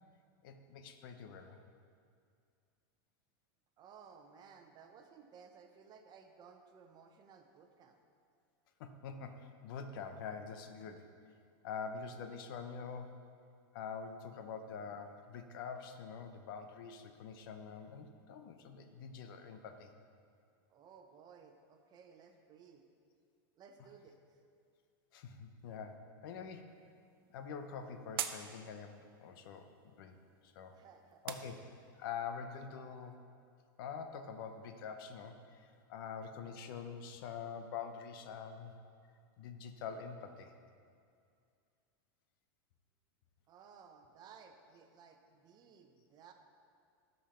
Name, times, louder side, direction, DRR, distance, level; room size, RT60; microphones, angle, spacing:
voice 1, 0.4-1.6 8.8-11.1 11.6-13.1 13.7-19.9 25.1-26.7 27.3-30.2 30.4-30.8 31.2-31.6 31.9-33.2 33.8-38.7 39.4-40.5, left 6 dB, 70° left, 7 dB, 0.8 m, -45 dB
voice 2, 3.8-8.0 20.7-22.9 23.6-24.4 30.7-31.3 43.5-46.3, right 6 dB, 35° right, 5 dB, 0.9 m, -58 dB
sound 1, 26.7-32.1, right 10 dB, 85° right, 0.6 m, -47 dB
13.0 x 5.5 x 4.4 m, 2.3 s
supercardioid pair, 130°, 12 cm